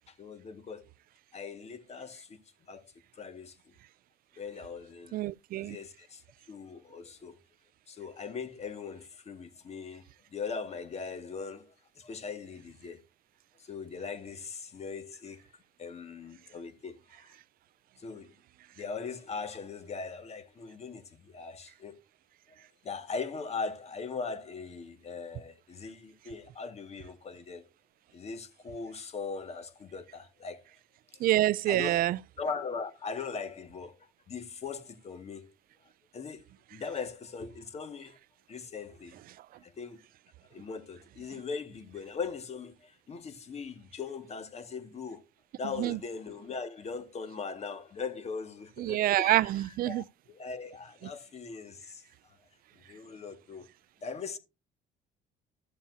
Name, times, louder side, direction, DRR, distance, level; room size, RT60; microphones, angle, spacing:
voice 1, 0.1-0.8 1.3-2.4 2.7-2.8 3.2-3.6 4.4-5.2 5.5-6.2 6.5-7.4 7.9-10.0 10.3-13.0 13.6-15.5 15.8-17.3 18.0-18.3 18.8-22.0 22.8-27.7 28.1-30.6 31.7-32.1 32.4-33.9 34.3-35.5 36.1-36.4 36.7-38.2 38.5-39.2 39.6-40.0 40.5-45.2 45.6-52.4 52.9-53.7 54.0-54.4, left 5 dB, 40° left, 1.9 m, -40 dB
voice 2, 5.1-5.8 31.2-32.2 45.8-46.0 48.8-50.0, right 15 dB, 60° right, 0.4 m, -26 dB
13.5 x 7.2 x 2.8 m
cardioid pair, 110°, 17 cm